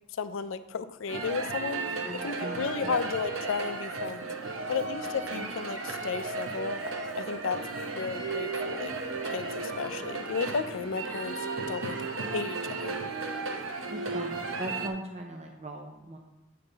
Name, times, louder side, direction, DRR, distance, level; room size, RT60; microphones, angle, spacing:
voice 1, 0.2-2.0 2.2-4.3 4.7-6.8 7.2-7.6 7.9-8.9 9.2-12.0 12.3-13.0, left 5 dB, 75° left, 12 dB, 0.4 m, -33 dB
sound 1, 1.1-14.9, right 3 dB, 75° right, 0.9 m, -35 dB
voice 2, 2.0-3.0 5.3-5.6 13.9-16.2, right 1 dB, 35° right, 2 dB, 0.6 m, -39 dB
8.4 x 5.5 x 3.9 m, 0.97 s
head